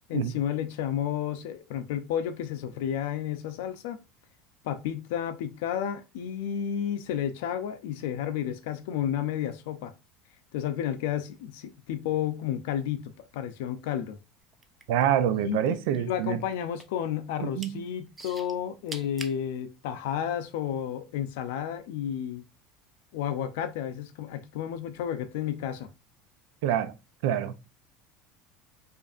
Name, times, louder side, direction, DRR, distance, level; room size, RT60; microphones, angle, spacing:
voice 1, 0.1-4.0 4.6-9.9 10.5-14.2 15.4-22.4 23.1-25.9, left 9 dB, 80° left, 0.5 m, -32 dB
sound 1, 14.5-15.7 15.9-17.0 17.4-17.7 18.2-19.4 20.1-20.2, right 3 dB, 15° right, 0.4 m, -43 dB
voice 2, 14.9-16.4 17.4-17.8 26.6-26.9 27.2-27.5, right 10 dB, 75° right, 0.4 m, -26 dB
5.0 x 2.6 x 2.4 m
cardioid pair, 165°, 0 cm